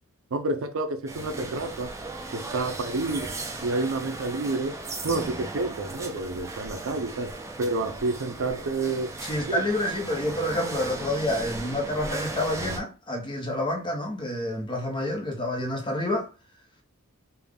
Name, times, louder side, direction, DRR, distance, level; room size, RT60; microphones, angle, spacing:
voice 1, 0.3-1.9 2.3-3.3 3.6-4.8 5.0-9.1 9.5-9.6, right 3 dB, 65° right, 0.5 m, -29 dB
sound 1, 1.1-12.8, right 2 dB, 15° right, 0.5 m, -36 dB
voice 2, 9.2-16.3, left 1 dB, 20° left, 0.8 m, -28 dB
3.5 x 2.3 x 3.5 m
head